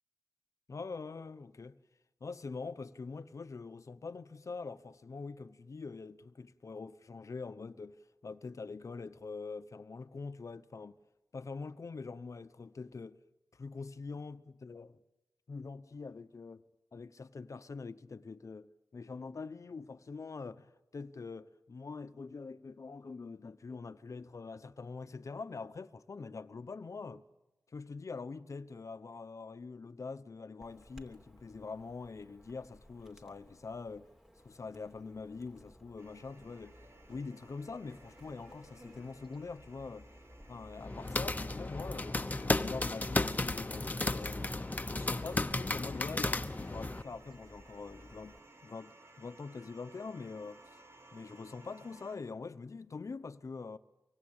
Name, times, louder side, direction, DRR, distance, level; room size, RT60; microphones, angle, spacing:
voice 1, 0.7-1.8 2.2-11.0 11.3-13.2 13.5-15.0 15.5-16.6 16.9-27.2 27.7-34.1 34.4-36.8 37.1-40.1 40.5-44.4 44.8-50.8 51.1-53.8, left 4 dB, 60° left, 0.9 m, -44 dB
Chirp tweet / Buzz, 30.6-48.4, equal, 10° right, 3.1 m, -57 dB
sound 1, 36.0-52.2, right 2 dB, 50° right, 4.7 m, -59 dB
sound 2, 40.8-47.0, left 2 dB, 25° left, 1.0 m, -34 dB
25.0 x 24.0 x 8.9 m
wide cardioid pair, 80°, 6 cm